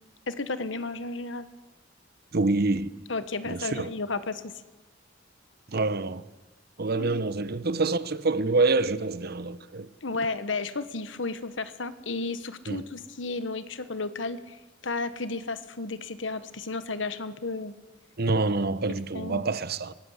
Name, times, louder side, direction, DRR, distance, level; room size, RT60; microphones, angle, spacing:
voice 1, 0.3-1.5 3.1-4.5 6.9-7.2 10.0-14.6 14.8-17.7 19.1-19.4, left 3 dB, 70° left, 1.4 m, -33 dB
voice 2, 2.3-2.9 3.5-3.9 5.7-6.2 6.8-9.9 12.7-12.8 18.2-19.9, right 3 dB, 55° right, 0.9 m, -26 dB
23.5 x 18.5 x 8.2 m
head